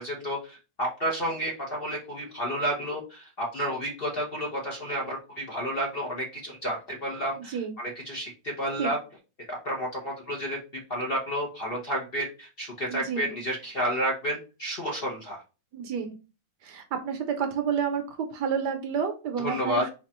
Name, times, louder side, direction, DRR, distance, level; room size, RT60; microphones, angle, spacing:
voice 1, 0.0-8.3 8.6-9.0 9.5-10.6 10.9-15.4 19.4-19.8, equal, 40° left, -3 dB, 0.9 m, -31 dB
voice 2, 7.4-7.8 8.8-8.9 12.9-13.3 15.7-16.1 16.6-19.9, right 7 dB, 70° right, 5 dB, 1.2 m, -30 dB
4.3 x 2.5 x 4.2 m, 0.32 s
omnidirectional pair, 2.0 m